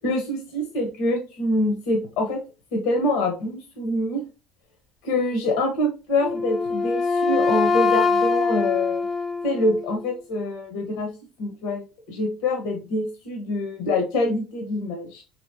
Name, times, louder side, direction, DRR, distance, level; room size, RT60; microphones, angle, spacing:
voice 1, 0.0-2.4 2.7-4.2 5.0-9.1 9.4-11.1 11.4-11.8 12.1-15.2, left 1 dB, 75° left, 2 dB, 0.9 m, -25 dB
Wind instrument woodwind instrument, 6.2-10.1, left 4 dB, 20° left, 0.5 m, -23 dB
2.9 x 2.8 x 2.7 m, 0.31 s
supercardioid pair, 95°, 0 cm